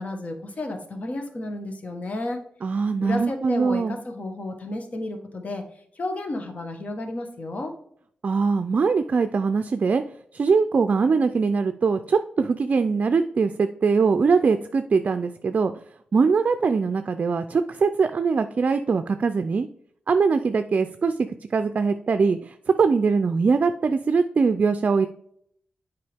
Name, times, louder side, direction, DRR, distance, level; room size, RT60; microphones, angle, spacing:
voice 1, 0.0-2.4 3.0-5.6 5.9-7.7, left 2 dB, 50° left, 5 dB, 1.3 m, -32 dB
voice 2, 2.6-4.0 8.2-10.0 10.3-15.7 16.1-19.7 20.1-25.1, right 5 dB, 50° right, 9 dB, 0.4 m, -22 dB
7.7 x 4.8 x 3.5 m, 0.66 s
cardioid pair, 75°, 3 cm